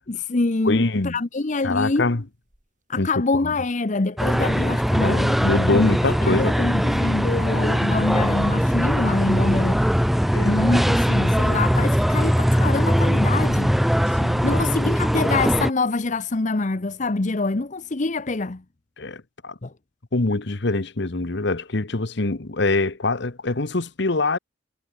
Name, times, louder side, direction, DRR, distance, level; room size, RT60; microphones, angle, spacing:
voice 1, 0.1-2.0 2.9-5.4 5.7-5.9 6.2-9.9 10.4-13.8 14.4-18.6 19.6-19.7, left 3 dB, 40° left, 0.8 m, -25 dB
voice 2, 0.6-1.2 1.6-2.2 3.0-3.1 5.0-6.6 10.3-10.8 14.1-14.6 19.0-19.5 20.1-24.4, left 2 dB, 65° left, 1.2 m, -24 dB
sound 1, 0.9-1.2 1.6-1.7 1.9-2.0 2.3-2.7 3.3-3.4 3.7-4.5 4.8-7.0, equal, 40° right, 6.1 m, -51 dB
sound 2, 4.2-15.7, equal, ahead, 0.5 m, -21 dB
head